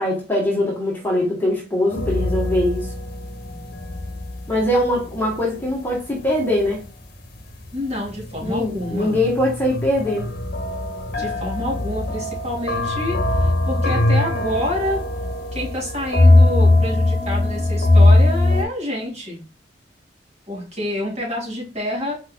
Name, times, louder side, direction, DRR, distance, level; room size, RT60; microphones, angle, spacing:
voice 1, 0.0-2.9 4.5-6.8 8.4-10.3, left 1 dB, 10° left, -4 dB, 1.4 m, -22 dB
sound 1, 1.9-6.9 7.1-18.6, left 2 dB, 55° left, 1.0 m, -21 dB
voice 2, 7.7-9.2 11.2-19.4 20.5-22.1, left 1 dB, 35° right, -3 dB, 2.5 m, -28 dB
4.5 x 4.5 x 2.3 m, 0.33 s
head